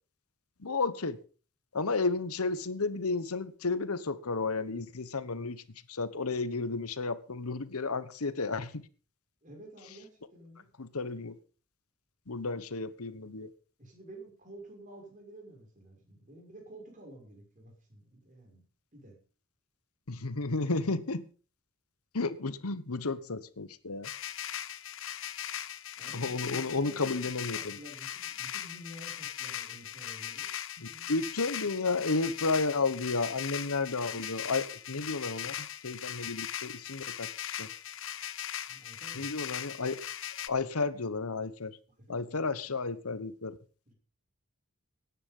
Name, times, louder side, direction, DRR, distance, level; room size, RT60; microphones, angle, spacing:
voice 1, 0.6-1.2 1.7-5.6 5.9-8.8 10.8-11.4 12.3-13.5 20.1-21.2 22.1-24.1 26.1-27.8 30.8-37.7 39.1-40.0 40.5-41.8 42.1-43.6, left 3 dB, 90° left, 15 dB, 1.2 m, -32 dB
voice 2, 9.4-10.7 13.8-18.6 18.9-19.2 26.0-31.1 38.7-39.3 42.0-42.7 43.9-44.0, right 1 dB, 35° right, 2 dB, 6.1 m, -51 dB
sound 1, 24.0-40.5, left 10 dB, 60° left, 0.9 m, -39 dB
18.0 x 9.9 x 5.5 m, 0.39 s
head